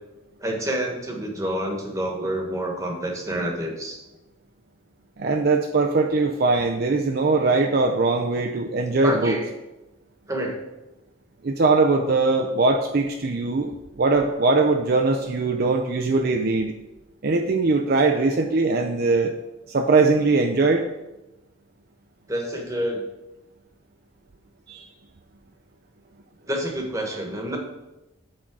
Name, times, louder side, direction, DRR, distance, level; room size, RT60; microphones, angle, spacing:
voice 1, 0.4-4.0 9.0-9.4 10.3-10.6 22.3-23.1 26.5-27.6, right 1 dB, 15° right, 0 dB, 1.3 m, -28 dB
voice 2, 5.2-9.4 11.4-16.7 17.2-19.3 19.7-20.8 24.7-24.8, right 3 dB, 45° right, 3 dB, 0.5 m, -21 dB
8.5 x 3.8 x 6.0 m, 1.0 s
head